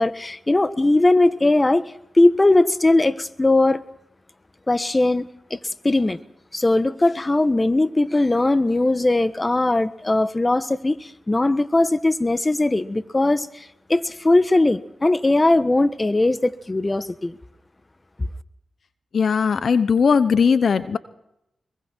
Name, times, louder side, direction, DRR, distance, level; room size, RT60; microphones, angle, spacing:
voice 1, 0.0-1.8 2.1-3.8 4.7-5.6 5.8-6.2 6.5-17.4, left 2 dB, 30° left, 13 dB, 1.4 m, -19 dB
voice 2, 19.1-21.0, left 6 dB, 70° left, 13 dB, 1.0 m, -18 dB
24.5 x 23.0 x 4.6 m, 0.83 s
supercardioid pair, 40°, 0 cm